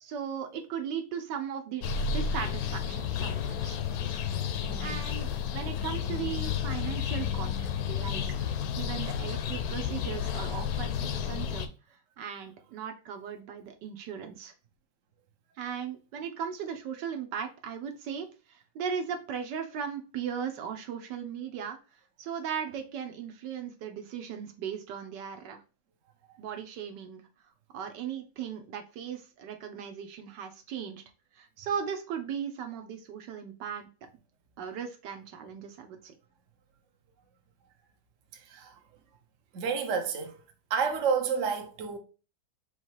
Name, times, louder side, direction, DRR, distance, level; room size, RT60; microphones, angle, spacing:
voice 1, 0.0-3.8 4.8-7.5 7.9-8.2 8.8-10.9 11.3-11.7 12.2-14.5 15.6-21.8 22.2-25.6 26.4-27.2 27.7-31.0 31.3-33.9 34.6-36.1, right 7 dB, 75° right, 1.3 m, -37 dB
sound 1, 1.8-11.7, left 7 dB, 70° left, 0.9 m, -31 dB
voice 2, 4.6-5.1 38.3-38.8 39.5-40.3 40.7-42.0, right 6 dB, 55° right, 0.9 m, -30 dB
3.9 x 2.9 x 4.5 m
omnidirectional pair, 2.0 m